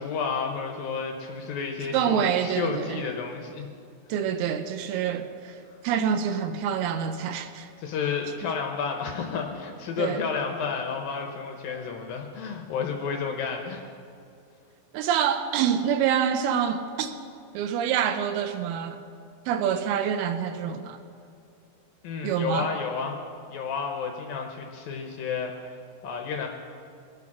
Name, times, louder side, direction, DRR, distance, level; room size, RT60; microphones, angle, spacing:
voice 1, 0.0-3.7 5.7-5.8 7.8-13.9 22.0-23.2 23.5-26.5, left 5 dB, 70° left, 2.3 m, -31 dB
voice 2, 1.9-3.0 4.1-5.6 5.8-7.7 10.0-10.2 14.9-17.2 17.5-19.0 19.5-21.0 22.2-22.7, right 8 dB, 85° right, 2.2 m, -26 dB
24.0 x 9.2 x 6.1 m
omnidirectional pair, 5.4 m